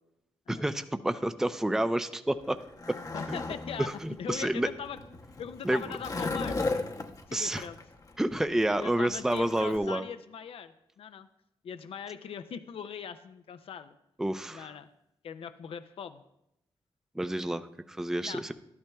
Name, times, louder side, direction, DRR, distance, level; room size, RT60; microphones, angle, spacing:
voice 1, 0.5-2.6 2.9-3.0 3.3-3.4 3.8-4.7 5.6-5.8 7.3-7.6 8.2-10.0 14.2-14.7 17.2-18.5, right 1 dB, 5° right, 10 dB, 0.4 m, -29 dB
Skateboard, 2.3-9.8, left 3 dB, 35° left, 0.8 m, -37 dB
voice 2, 3.1-3.9 4.2-5.0 5.4-6.6 7.3-7.8 8.7-11.3 11.6-14.0 14.5-14.9 15.2-16.2 18.2-18.4, left 7 dB, 70° left, 10 dB, 0.5 m, -40 dB
12.5 x 12.0 x 2.3 m, 0.83 s
cardioid pair, 95°, 10 cm